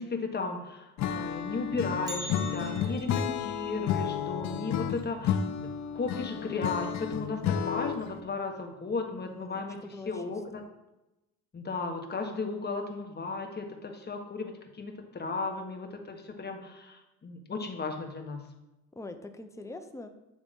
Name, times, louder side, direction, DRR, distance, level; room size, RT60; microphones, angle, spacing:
voice 1, 0.0-9.8 10.1-10.6 11.5-18.4, left 4 dB, 35° left, 3 dB, 1.4 m, -35 dB
Acoustic guitar / Strum, 1.0-8.2, left 8 dB, 65° left, 0.6 m, -32 dB
Bell, 2.1-6.1 6.4-6.5 7.0-7.1 7.9-8.0 8.8-9.0 9.4-9.5, right 1 dB, 15° right, 1.3 m, -46 dB
voice 2, 9.2-10.7 18.9-20.1, left 2 dB, 10° left, 7 dB, 0.7 m, -44 dB
8.6 x 3.6 x 5.3 m, 0.94 s
cardioid pair, 90°, 30 cm